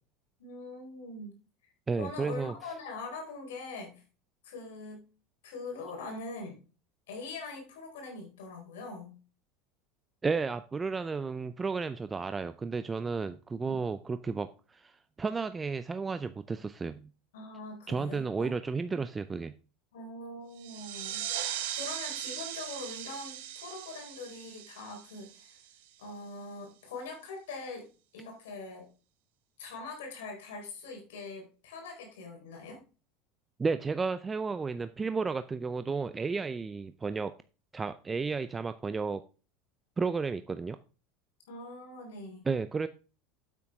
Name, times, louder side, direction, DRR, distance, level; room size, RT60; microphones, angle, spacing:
voice 1, 0.4-1.4 1.9-4.0 4.4-5.0 5.4-6.6 7.1-9.2 13.6-13.8 17.3-18.5 19.9-21.2 21.7-25.6 26.0-28.9 29.6-32.8 41.5-42.5, left 3 dB, 85° left, 2 dB, 4.2 m, -43 dB
voice 2, 1.9-2.5 10.2-17.1 17.9-19.5 33.6-37.3 37.7-39.2 40.0-40.8 42.4-42.9, right 4 dB, 20° right, 11 dB, 0.5 m, -33 dB
sound 1, 20.6-25.9, right 11 dB, 75° right, 1.4 m, -39 dB
8.7 x 8.4 x 3.6 m, 0.35 s
hypercardioid pair, 100°, 0 cm